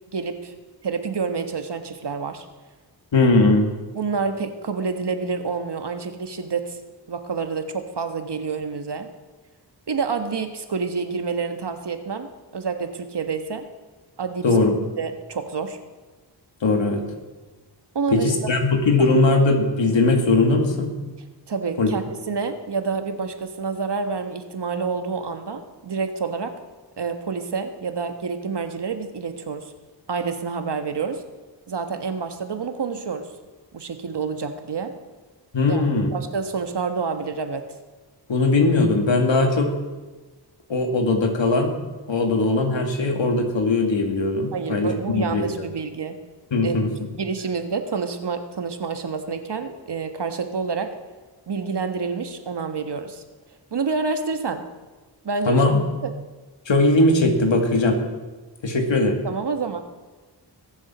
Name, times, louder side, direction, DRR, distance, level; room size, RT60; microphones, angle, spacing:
voice 1, 0.1-0.5 0.8-2.4 3.9-6.8 7.1-9.1 9.9-13.7 14.2-14.4 15.0-15.8 17.9-18.3 19.0-19.1 21.5-26.5 27.0-29.7 30.1-31.2 31.7-33.3 33.7-34.9 35.7-37.7 44.5-46.2 46.6-46.7 47.2-50.9 51.5-53.2 53.7-54.6 55.2-55.7 56.0-56.1 59.2-59.8, right 5 dB, 65° right, 7 dB, 1.5 m, -28 dB
voice 2, 3.1-3.7 14.4-14.8 16.6-17.0 18.1-20.9 21.8-21.9 35.5-36.1 38.3-39.7 40.7-41.7 42.1-45.7 46.5-46.9 55.5-55.8 56.7-58.0 58.6-59.2, left 2 dB, 85° left, 3 dB, 2.3 m, -19 dB
21.5 x 7.5 x 6.1 m, 1.2 s
wide cardioid pair, 65°, 43 cm